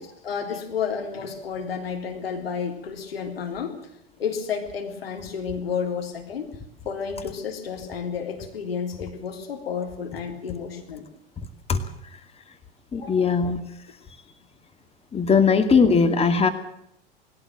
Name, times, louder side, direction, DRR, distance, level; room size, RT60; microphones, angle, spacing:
voice 1, 0.2-3.8 4.2-6.5 6.8-11.0 12.9-13.4, left 6 dB, 75° left, 3 dB, 3.4 m, -31 dB
voice 2, 12.9-13.6 15.1-16.5, left 5 dB, 20° left, 8 dB, 2.4 m, -19 dB
21.0 x 17.0 x 7.7 m, 0.75 s
figure-of-eight pair, 80°, 30 cm